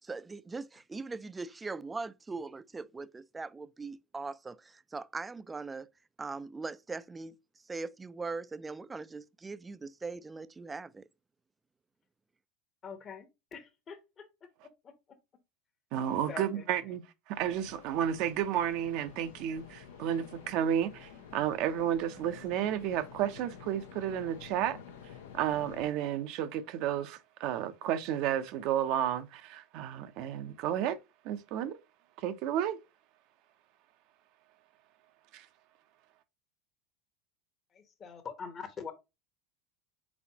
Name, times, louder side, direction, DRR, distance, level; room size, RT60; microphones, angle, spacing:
voice 1, 0.1-4.6 4.9-5.9 6.2-7.3 7.7-11.0, right 3 dB, 15° right, 0.3 m, -40 dB
voice 2, 12.8-14.3 14.8-14.9 16.3-16.6 37.7-38.9, left 6 dB, 35° left, 0.9 m, -44 dB
voice 3, 15.9-24.8 25.3-31.0 31.2-31.8 32.2-32.8 35.3-35.5, right 10 dB, 60° right, 0.6 m, -32 dB
sound 1, 17.4-25.9, left 7 dB, 80° left, 0.6 m, -50 dB
4.1 x 3.9 x 2.8 m
hypercardioid pair, 95°, 0 cm